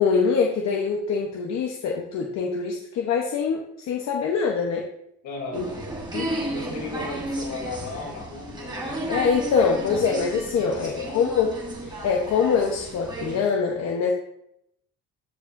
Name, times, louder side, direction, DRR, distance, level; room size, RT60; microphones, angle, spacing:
voice 1, 0.0-4.8 5.5-5.7 6.1-6.3 9.1-11.5 11.8-14.1, left 5 dB, 55° left, 0 dB, 1.0 m, -24 dB
voice 2, 5.2-5.8 6.5-9.7 10.6-11.3, left 3 dB, 75° left, -1 dB, 3.1 m, -36 dB
sound 1, 5.5-13.4, right 1 dB, 15° right, 1.2 m, -33 dB
14.0 x 4.9 x 2.6 m, 0.74 s
cardioid pair, 175°, 31 cm